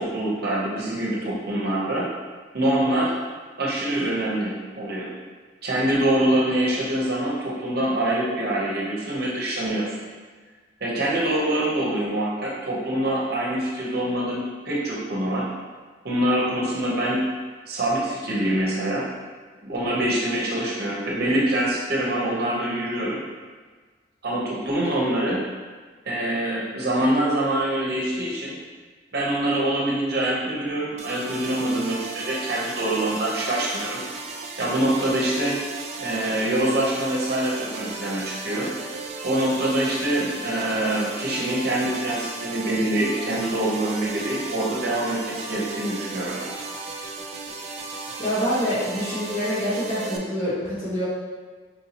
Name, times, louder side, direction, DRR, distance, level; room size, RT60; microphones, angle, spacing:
voice 1, 0.0-2.1 2.5-3.1 3.6-5.1 5.6-9.8 10.8-15.4 16.0-17.2 17.7-19.0 19.6-23.2 24.2-25.4 26.1-28.6 29.1-34.0 34.6-35.6 36.0-38.7 39.2-46.5, right 1 dB, 55° right, -5 dB, 0.8 m, -25 dB
sound 1, 31.0-50.2, right 3 dB, 35° right, 0.3 m, -35 dB
voice 2, 48.2-51.1, equal, 35° left, -10 dB, 1.3 m, -26 dB
4.4 x 2.7 x 2.8 m, 1.4 s
head